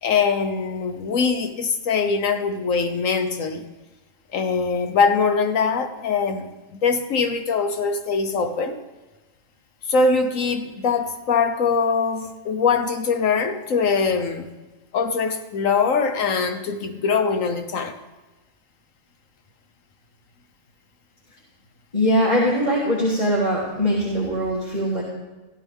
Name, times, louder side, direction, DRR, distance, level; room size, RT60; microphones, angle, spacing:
voice 1, 0.0-3.7 4.3-6.5 6.8-8.8 9.9-14.5 14.9-17.9, left 5 dB, 70° left, 8 dB, 1.4 m, -22 dB
voice 2, 21.9-25.0, equal, 30° left, -7 dB, 3.2 m, -21 dB
16.5 x 13.0 x 3.6 m, 1.2 s
omnidirectional pair, 1.5 m